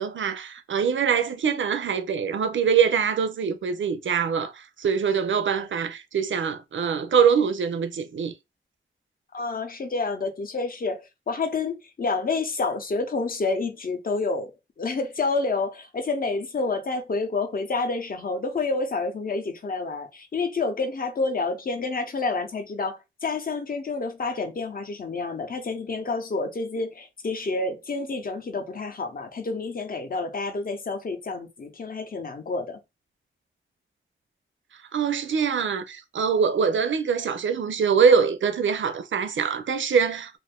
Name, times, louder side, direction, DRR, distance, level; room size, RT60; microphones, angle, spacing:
voice 1, 0.0-8.3 34.9-40.4, right 6 dB, 70° right, 0.5 m, -23 dB
voice 2, 9.3-32.8, left 3 dB, 45° left, 0.6 m, -29 dB
2.5 x 2.5 x 3.4 m
wide cardioid pair, 155°, 21 cm